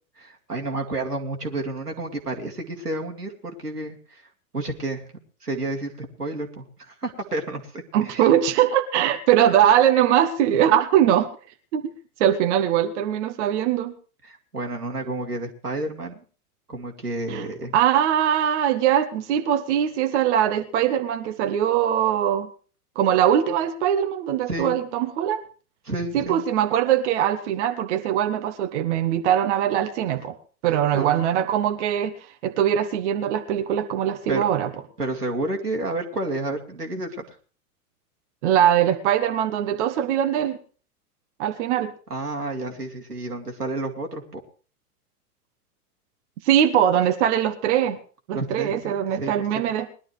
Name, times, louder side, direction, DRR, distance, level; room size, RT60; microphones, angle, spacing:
voice 1, 0.2-4.2 4.5-5.0 5.4-8.3 14.2-16.2 16.7-17.7 24.5-24.8 25.8-26.4 30.9-31.5 34.3-34.4 35.0-37.4 42.1-44.4 48.3-49.6, right 2 dB, 90° right, 2 dB, 2.3 m, -30 dB
voice 2, 7.9-11.3 11.7-11.9 12.2-13.9 17.3-17.4 17.7-22.5 23.0-25.4 26.1-30.4 30.6-32.1 32.4-34.7 38.4-40.6 41.4-41.9 46.4-48.0 48.3-49.9, right 10 dB, 50° right, 8 dB, 1.2 m, -21 dB
20.5 x 11.5 x 3.2 m, 0.39 s
figure-of-eight pair, 100°, 46 cm